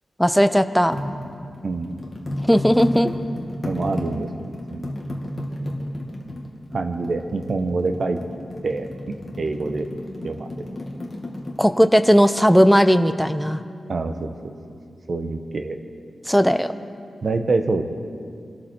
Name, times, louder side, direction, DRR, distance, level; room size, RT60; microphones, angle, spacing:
voice 1, 0.2-1.0 2.5-3.1 11.6-13.6 16.3-16.7, equal, ahead, 9 dB, 0.5 m, -17 dB
sound 1, 0.9-11.7, left 1 dB, 25° left, 1.8 m, -32 dB
voice 2, 1.6-1.9 3.6-5.0 6.7-8.2 8.6-9.9 10.2-10.6 13.9-14.3 15.1-15.8 17.2-17.8, right 3 dB, 45° right, 7 dB, 1.0 m, -26 dB
24.0 x 13.0 x 4.5 m, 2.4 s
wide cardioid pair, 165°, 0 cm